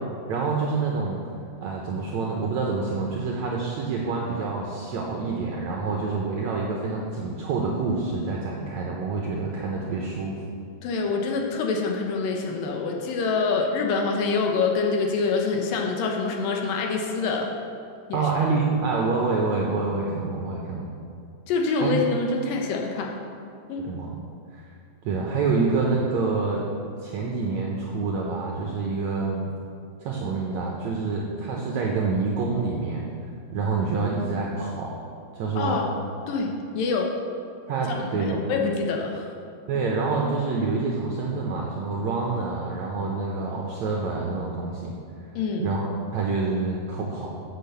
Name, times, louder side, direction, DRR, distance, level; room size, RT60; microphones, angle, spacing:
voice 1, 0.3-1.2 1.6-10.4 18.1-20.9 21.8-21.9 23.8-24.1 24.5-24.6 25.0-26.7 27.0-29.5 30.0-33.1 33.5-35.0 35.3-35.8 37.7-38.4 39.7-44.9 45.6-47.4, right 4 dB, 75° right, -2 dB, 1.6 m, -27 dB
voice 2, 10.8-17.5 18.1-18.2 21.5-23.1 23.7-23.8 35.6-35.9 36.3-36.5 36.7-37.1 38.2-39.3 45.4-45.6, left 4 dB, 75° left, 1 dB, 2.5 m, -25 dB
8.3 x 6.6 x 6.8 m, 2.5 s
omnidirectional pair, 4.3 m